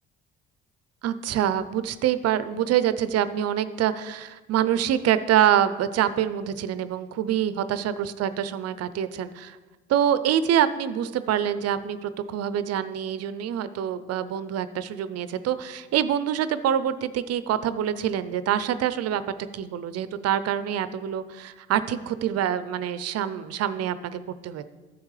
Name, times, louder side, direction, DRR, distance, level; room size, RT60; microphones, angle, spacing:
voice 1, 1.0-9.6 9.9-19.2 19.5-24.7, right 10 dB, 55° right, 13 dB, 0.6 m, -25 dB
12.5 x 7.1 x 3.3 m, 1.2 s
hypercardioid pair, 55°, 29 cm